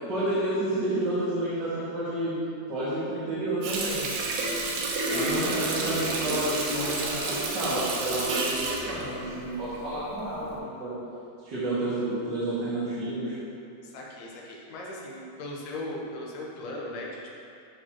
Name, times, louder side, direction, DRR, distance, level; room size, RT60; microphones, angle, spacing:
voice 1, 0.0-2.4 2.7-4.0 5.1-10.9 11.4-13.4, right 1 dB, 40° right, -12 dB, 1.6 m, -30 dB
Water tap faucet, 3.6-10.0 10.4-10.6, right 3 dB, 90° right, 3.0 m, -30 dB
voice 2, 5.1-5.7 13.8-17.4, left 2 dB, 75° left, -3 dB, 2.9 m, -38 dB
12.5 x 6.5 x 3.0 m, 2.6 s
omnidirectional pair, 4.6 m